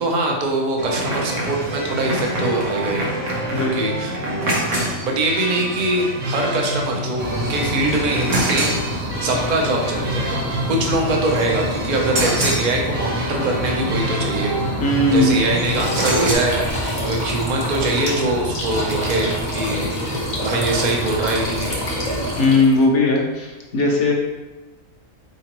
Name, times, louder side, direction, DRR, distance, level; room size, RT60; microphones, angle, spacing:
voice 1, 0.0-3.1 3.6-4.2 4.6-14.5 15.1-21.8, right 2 dB, 50° right, 0 dB, 0.5 m, -23 dB
sound 1, 0.8-16.4, right 1 dB, 65° right, 1.1 m, -26 dB
sound 2, 7.2-22.5, equal, 30° right, 0.9 m, -28 dB
voice 2, 14.8-15.5 22.4-24.1, left 2 dB, 65° left, 0 dB, 0.9 m, -18 dB
sound 3, 15.6-22.8, equal, 40° left, 0.7 m, -28 dB
3.8 x 2.9 x 2.9 m, 1.2 s
omnidirectional pair, 1.4 m